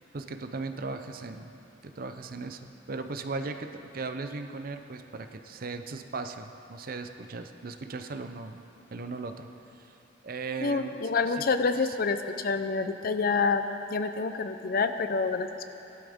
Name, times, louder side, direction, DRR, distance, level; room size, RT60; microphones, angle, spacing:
voice 1, 0.1-1.5 1.8-8.6 8.9-9.5 9.7-10.0 10.2-11.4 11.8-12.0, right 3 dB, 50° right, 7 dB, 0.6 m, -38 dB
voice 2, 10.6-13.6 13.9-15.7, left 4 dB, 50° left, 9 dB, 0.6 m, -27 dB
18.0 x 12.0 x 3.6 m, 2.9 s
head